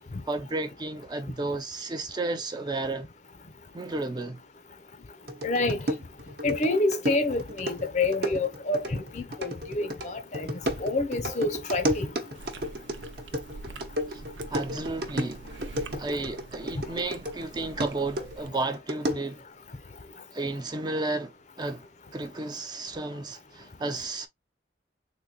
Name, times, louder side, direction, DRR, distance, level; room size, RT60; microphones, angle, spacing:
voice 1, 0.3-3.1 3.7-4.4 14.1-14.2 14.5-15.4 16.0-19.4 20.3-21.8 22.1-24.3, right 2 dB, 25° right, 0.4 m, -32 dB
sound 1, 5.3-17.4 17.8-19.4, equal, 60° right, 0.9 m, -33 dB
voice 2, 5.4-5.8 6.4-10.5 10.8-12.1, left 2 dB, 40° left, 0.5 m, -27 dB
Chewing mastication, 12.3-18.5, right 3 dB, 85° right, 0.6 m, -45 dB
3.8 x 2.6 x 2.8 m
head